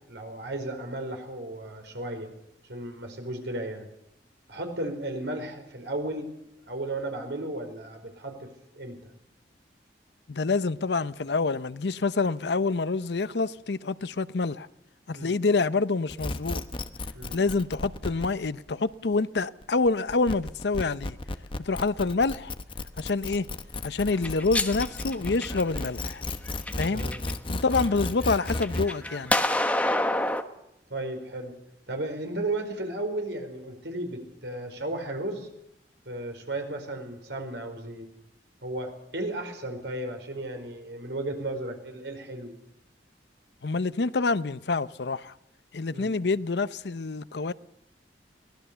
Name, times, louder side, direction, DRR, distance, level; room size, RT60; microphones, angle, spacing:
voice 1, 0.0-2.3 2.7-3.9 4.5-6.3 6.7-8.5 8.7-9.1 15.1-15.3 17.1-17.4 26.9-27.2 30.9-31.5 31.9-35.5 36.0-38.1 38.6-42.5 45.9-46.1, right 1 dB, 80° right, 4.8 m, -34 dB
voice 2, 10.3-14.7 15.1-16.6 17.3-21.2 21.6-22.5 23.0-23.5 23.8-26.2 26.7-27.0 27.5-29.3 43.6-45.3 45.7-47.5, left 3 dB, 70° left, 0.7 m, -27 dB
sound 1, 16.1-28.9, left 2 dB, 30° left, 1.0 m, -34 dB
sound 2, 24.1-25.9 26.5-27.3 27.7-30.4, left 1 dB, 10° left, 1.2 m, -28 dB
23.5 x 18.5 x 6.9 m
head